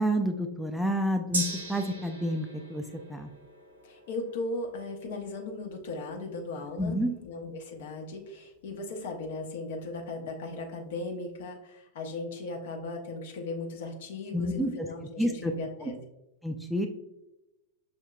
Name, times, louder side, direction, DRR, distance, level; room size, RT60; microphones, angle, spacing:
voice 1, 0.0-1.4 1.7-2.8 3.1-3.3 6.8-7.1 14.3-14.9 15.2-15.5 16.4-16.9, equal, ahead, 4 dB, 0.3 m, -29 dB
Gong, 1.3-9.1 9.4-9.5, right 2 dB, 70° right, 0.7 m, -42 dB
voice 2, 3.8-16.0, left 2 dB, 55° left, 2 dB, 0.8 m, -37 dB
6.3 x 2.7 x 2.2 m, 0.90 s
figure-of-eight pair, 90°, 0 cm